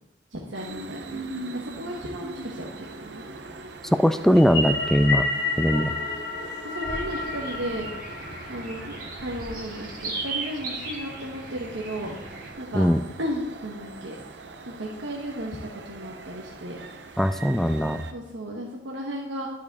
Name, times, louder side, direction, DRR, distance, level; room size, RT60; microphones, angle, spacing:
voice 1, 0.3-1.2 1.5-3.2 6.6-7.9 8.5-12.9 13.2-14.2 14.6-15.6 15.8-16.8 18.1-19.5, equal, 85° right, -2 dB, 1.2 m, -34 dB
sound 1, 0.5-18.1, right 3 dB, 65° right, 0.7 m, -42 dB
voice 2, 4.0-5.3 5.6-5.9 12.7-13.0 17.2-18.0, equal, ahead, 10 dB, 0.3 m, -20 dB
sound 2, 4.4-8.9, left 3 dB, 60° left, 1.3 m, -30 dB
sound 3, 6.8-12.5, right 2 dB, 45° right, 1.9 m, -37 dB
12.0 x 5.0 x 4.1 m, 1.0 s
head